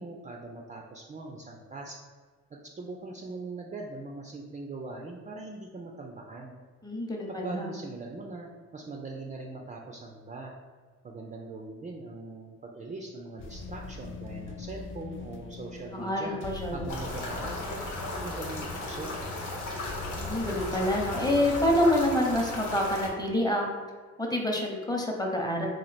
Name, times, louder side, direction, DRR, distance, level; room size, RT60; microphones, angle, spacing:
voice 1, 0.0-2.0 2.8-6.6 7.4-10.5 11.0-16.4 16.7-17.8 18.2-19.1, right 3 dB, 25° right, 0 dB, 0.4 m, -41 dB
voice 2, 6.8-7.7 15.9-16.8 20.2-23.7 24.2-25.7, left 1 dB, 15° left, 0 dB, 0.7 m, -27 dB
sound 1, 13.4-22.0, left 3 dB, 45° left, 0.4 m, -42 dB
sound 2, 16.9-23.1, left 2 dB, 85° left, 1.0 m, -36 dB
3.1 x 2.5 x 4.1 m, 1.5 s
cardioid pair, 90°, 30 cm